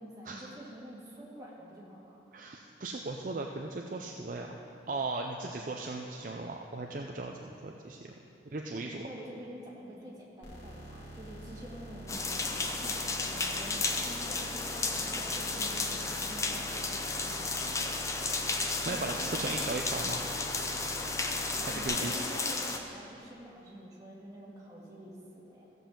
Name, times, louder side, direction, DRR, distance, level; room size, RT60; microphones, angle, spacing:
voice 1, 0.0-2.2 8.8-18.0 18.9-19.4 21.6-25.6, right 1 dB, 20° right, -5 dB, 1.9 m, -47 dB
voice 2, 2.3-4.6 4.9-8.1 8.5-9.0 18.9-20.2 21.6-22.1, right 3 dB, 45° right, 1 dB, 0.5 m, -37 dB
sound 1, 10.4-21.8, right 1 dB, 80° left, 2.4 m, -47 dB
sound 2, 12.1-22.8, left 3 dB, 15° left, 0.6 m, -33 dB
14.5 x 5.4 x 7.3 m, 2.9 s
head